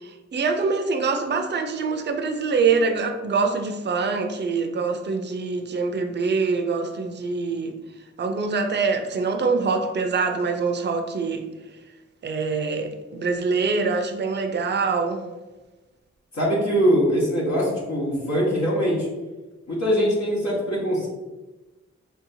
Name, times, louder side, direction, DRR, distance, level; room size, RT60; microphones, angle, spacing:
voice 1, 0.0-7.7 8.2-11.4 12.2-15.2, right 4 dB, 40° right, 5 dB, 0.5 m, -24 dB
voice 2, 16.3-19.1 19.7-21.1, equal, 75° left, -6 dB, 1.1 m, -22 dB
3.3 x 2.8 x 2.7 m, 1.1 s
cardioid pair, 55°, 29 cm